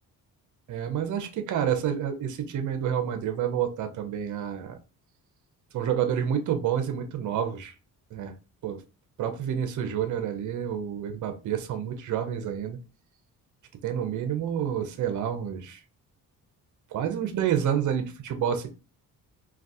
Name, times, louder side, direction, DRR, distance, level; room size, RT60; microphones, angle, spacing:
voice 1, 0.7-4.8 5.7-7.7 8.1-8.3 8.6-8.8 9.2-12.8 13.8-15.8 16.9-18.7, right 9 dB, 55° right, 0.6 m, -29 dB
2.3 x 2.3 x 2.6 m
cardioid pair, 80°, 36 cm